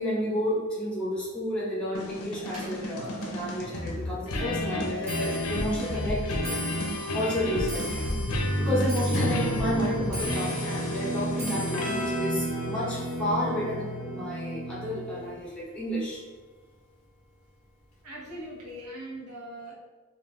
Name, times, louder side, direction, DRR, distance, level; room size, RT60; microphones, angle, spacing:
voice 1, 0.0-6.4 6.9-8.2 8.6-16.2, equal, 5° left, -7 dB, 0.8 m, -31 dB
sound 1, 1.9-15.4, equal, 80° left, 0.5 m, -31 dB
Clock, 2.5-15.8 16.1-16.6 17.4-17.5 17.8-18.2 18.5-18.6, left 1 dB, 30° right, 0.7 m, -42 dB
sound 2, 9.1-13.5, left 1 dB, 30° left, 0.5 m, -36 dB
voice 2, 18.0-19.8, right 1 dB, 85° right, -4 dB, 0.9 m, -40 dB
2.4 x 2.3 x 3.3 m, 1.3 s
head